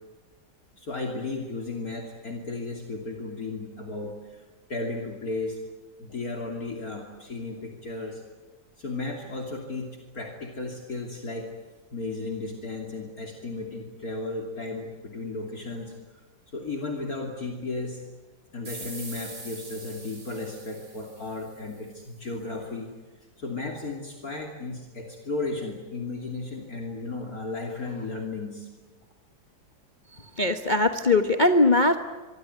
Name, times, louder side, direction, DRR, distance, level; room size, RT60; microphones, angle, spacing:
voice 1, 0.8-4.4 4.7-5.6 6.0-8.2 8.8-11.5 11.9-15.9 16.5-18.0 18.5-22.9 23.4-28.7, left 3 dB, 50° left, 2 dB, 3.3 m, -34 dB
sound 1, 18.6-22.0, right 3 dB, 45° right, 4.2 m, -43 dB
voice 2, 30.4-32.0, left 2 dB, 30° left, 6 dB, 1.2 m, -20 dB
25.0 x 24.5 x 9.4 m, 1.3 s
omnidirectional pair, 2.0 m